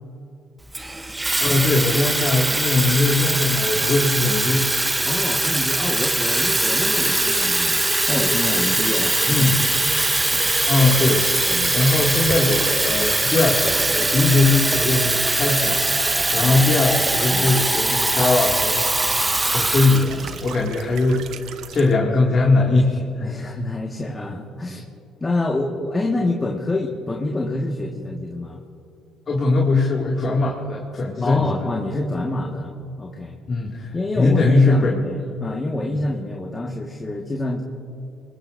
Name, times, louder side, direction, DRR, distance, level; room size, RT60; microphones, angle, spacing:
Water tap faucet / Fill (with liquid), 0.7-20.5, right 2 dB, 15° right, 0.9 m, -21 dB
voice 1, 1.4-4.7 9.3-9.6 10.7-18.9 19.5-21.4 21.7-23.3 29.3-31.6 33.5-34.9 35.9-36.0, left 3 dB, 45° left, -3 dB, 2.3 m, -20 dB
voice 2, 5.0-9.5 10.3-10.5 11.5-11.8 16.3-16.7 17.3-17.6 23.2-24.8 25.2-28.6 31.2-33.4 33.9-37.6, left 2 dB, 25° left, 0 dB, 1.6 m, -27 dB
sound 1, 9.5-21.9, right 9 dB, 70° right, 0.7 m, -37 dB
24.5 x 21.0 x 2.6 m, 2.6 s
supercardioid pair, 65°, 0 cm